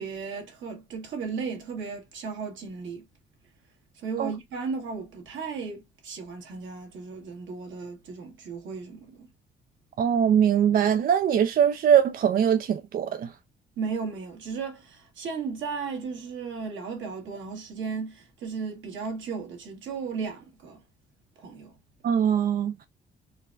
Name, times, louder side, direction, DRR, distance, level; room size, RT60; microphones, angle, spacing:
voice 1, 0.0-3.0 4.0-9.3 13.8-20.8 21.4-21.7, right 5 dB, 75° right, 1.5 m, -35 dB
voice 2, 10.0-13.3 22.0-22.9, right 8 dB, 45° right, 0.4 m, -22 dB
4.0 x 2.2 x 2.5 m
cardioid pair, 90°, 20 cm